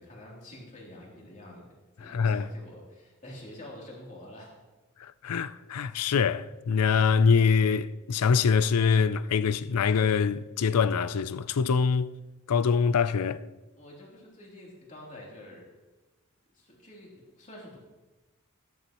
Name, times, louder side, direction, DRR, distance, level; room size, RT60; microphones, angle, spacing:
voice 1, 0.0-1.7 2.0-4.5 13.7-15.7 16.5-17.8, left 1 dB, 35° left, 3.2 m, -47 dB
voice 2, 2.0-2.5 5.0-12.1 12.5-13.4, left 6 dB, 85° left, 0.5 m, -24 dB
13.5 x 13.0 x 3.0 m
head